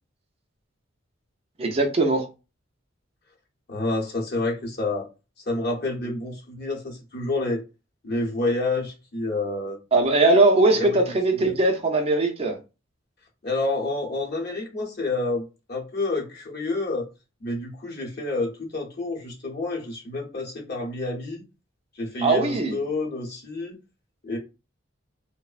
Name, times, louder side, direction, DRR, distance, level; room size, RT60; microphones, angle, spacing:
voice 1, 1.6-2.2 9.9-12.6 22.2-22.8, right 2 dB, 30° right, 0.4 m, -20 dB
voice 2, 3.7-5.1 5.5-7.6 8.0-9.8 10.7-11.0 11.3-11.5 13.4-17.1 17.4-21.4 21.9-23.8 24.2-24.4, left 2 dB, 55° left, 0.8 m, -29 dB
3.0 x 2.0 x 2.4 m
head